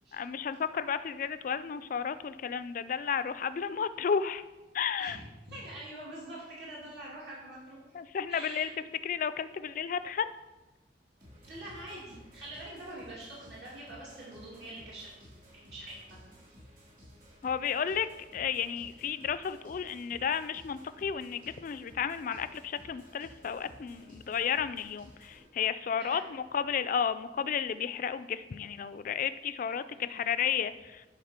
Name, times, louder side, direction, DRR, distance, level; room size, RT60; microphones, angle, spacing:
voice 1, 0.1-4.4 4.7-5.2 7.9-8.7 9.0-10.3 17.4-18.1 18.3-31.0, left 7 dB, 50° left, 13 dB, 0.3 m, -32 dB
voice 2, 5.0-7.8 8.3-8.7 11.4-16.3 26.0-26.2 29.9-30.3, right 1 dB, 70° right, -7 dB, 2.6 m, -45 dB
sound 1, 11.2-25.4, equal, 45° right, 2.5 m, -55 dB
10.0 x 3.6 x 5.7 m, 1.1 s
head